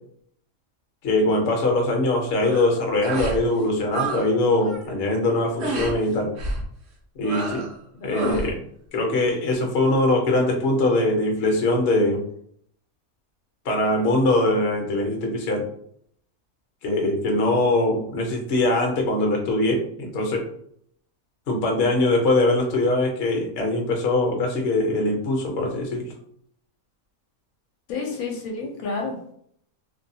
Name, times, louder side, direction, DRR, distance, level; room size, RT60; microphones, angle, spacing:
voice 1, 1.0-6.3 7.1-7.7 8.0-8.6 8.9-12.2 13.6-15.7 16.8-20.5 21.5-26.0, left 2 dB, 55° left, 1 dB, 0.8 m, -22 dB
sound 1, 2.3-2.7 3.0-3.4 3.7-4.3 4.5-4.9 5.6-5.9 6.4-6.7 7.2-7.7 8.1-8.5, right 3 dB, 60° right, 0.8 m, -30 dB
voice 2, 27.9-29.3, left 4 dB, 75° left, 1 dB, 1.0 m, -30 dB
2.6 x 2.2 x 2.7 m, 0.66 s
omnidirectional pair, 1.5 m